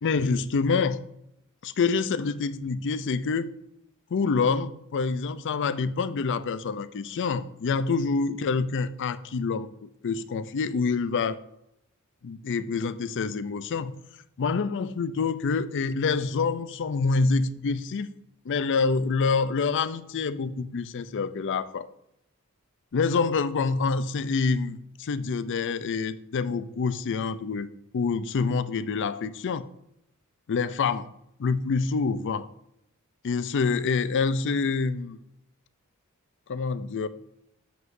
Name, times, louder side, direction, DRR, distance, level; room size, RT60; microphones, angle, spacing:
voice 1, 0.0-1.0 1.6-3.5 4.1-11.4 12.2-13.9 14.4-18.1 18.5-21.9 22.9-27.7 27.9-29.7 30.5-31.1 31.4-32.5 33.2-35.2 36.5-37.1, left 4 dB, 55° left, 0.4 m, -26 dB
7.9 x 7.8 x 2.6 m
head